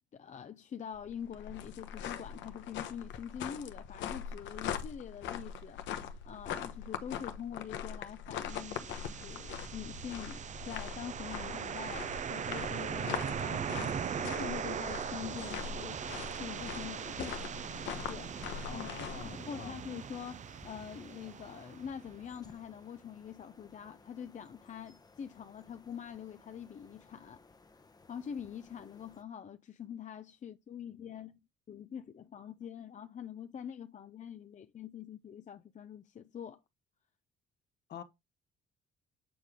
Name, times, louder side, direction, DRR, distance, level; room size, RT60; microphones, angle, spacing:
voice 1, 0.1-17.6 18.1-18.9 19.2-27.4 28.1-31.4 31.7-36.6, left 8 dB, 40° left, 0.6 m, -45 dB
sound 1, 0.9-19.3, left 8 dB, 90° left, 1.1 m, -42 dB
sound 2, 8.5-22.4, right 8 dB, 40° right, 0.6 m, -40 dB
sound 3, 15.2-29.2, left 3 dB, 20° left, 1.0 m, -60 dB
voice 2, 18.6-19.8 37.9-38.0, left 8 dB, 60° left, 1.4 m, -46 dB
8.7 x 4.8 x 3.6 m
cardioid pair, 110°, 19 cm